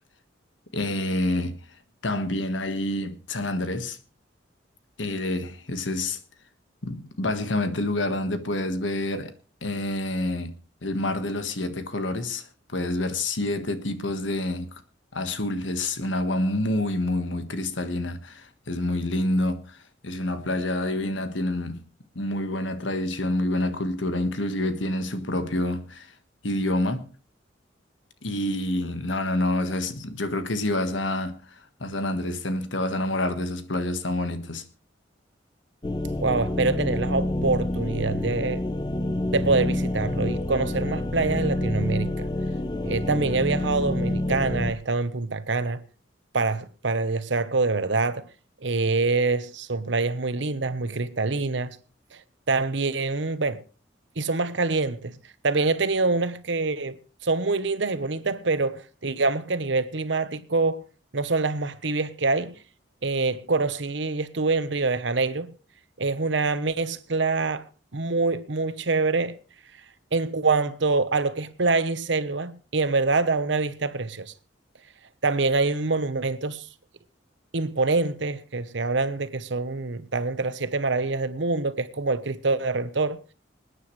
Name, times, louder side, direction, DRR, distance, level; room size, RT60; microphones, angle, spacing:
voice 1, 0.7-1.6 2.0-4.0 5.0-6.2 6.8-9.3 9.6-12.5 12.7-14.7 15.1-21.8 22.1-26.1 26.4-27.1 28.2-34.6, left 1 dB, 80° left, 1.5 m, -28 dB
sound 1, 35.8-44.7, left 1 dB, 25° left, 0.7 m, -28 dB
voice 2, 36.2-38.6 39.3-42.3 42.8-45.8 46.3-48.3 48.6-51.8 52.5-53.6 54.2-55.1 55.4-60.8 61.1-62.6 63.0-65.5 66.0-67.7 67.9-69.4 70.1-74.3 75.2-76.7 77.5-83.2, right 3 dB, 75° right, 1.0 m, -25 dB
26.5 x 9.5 x 3.2 m
head